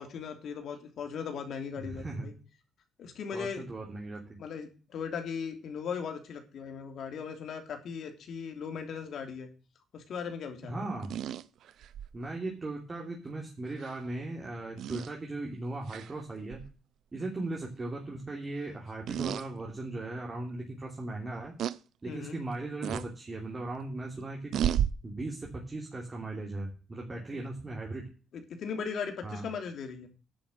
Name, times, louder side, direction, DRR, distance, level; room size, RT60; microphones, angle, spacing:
voice 1, 0.0-2.3 3.0-3.7 4.4-9.5 9.9-10.9 22.1-22.4 28.3-30.1, left 6 dB, 65° left, 5 dB, 2.9 m, -38 dB
voice 2, 1.8-2.3 3.3-4.4 10.6-11.1 12.1-16.6 17.1-21.6 22.0-24.5 25.0-28.1 29.2-29.5, right 2 dB, 25° right, -1 dB, 3.1 m, -38 dB
sound 1, 11.0-12.1 13.8-14.0 14.8-15.1 15.9-16.1 16.5-16.7 19.1-19.5 20.0-20.1 21.6-21.8 22.8-23.1 24.5-24.9, right 10 dB, 75° right, 0.5 m, -32 dB
10.5 x 5.7 x 7.9 m, 0.34 s
cardioid pair, 90°, 0 cm